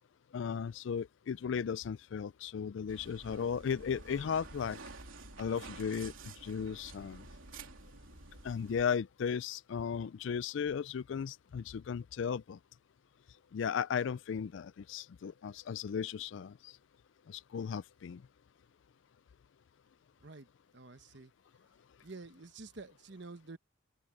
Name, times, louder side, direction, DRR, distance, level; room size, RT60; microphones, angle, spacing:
voice 1, 0.3-4.8 5.4-6.1 6.4-7.2 8.4-12.6 13.5-16.6 17.3-18.2, left 7 dB, 70° left, 0.4 m, -36 dB
sound 1, 2.9-8.9, right 3 dB, 90° right, 3.6 m, -50 dB
voice 2, 20.7-21.3 22.0-23.6, right 3 dB, 60° right, 1.1 m, -49 dB
open air
head